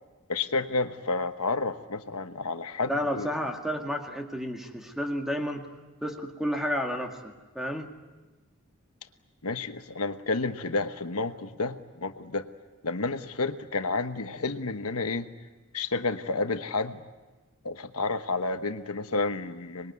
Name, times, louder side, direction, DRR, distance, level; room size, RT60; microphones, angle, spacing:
voice 1, 0.3-3.3 9.4-12.5 12.8-15.3 15.7-17.0 17.6-19.9, left 3 dB, 90° left, 8 dB, 1.2 m, -30 dB
voice 2, 2.9-5.6 6.0-7.9, equal, ahead, 2 dB, 2.0 m, -31 dB
25.0 x 21.0 x 9.5 m, 1.2 s
head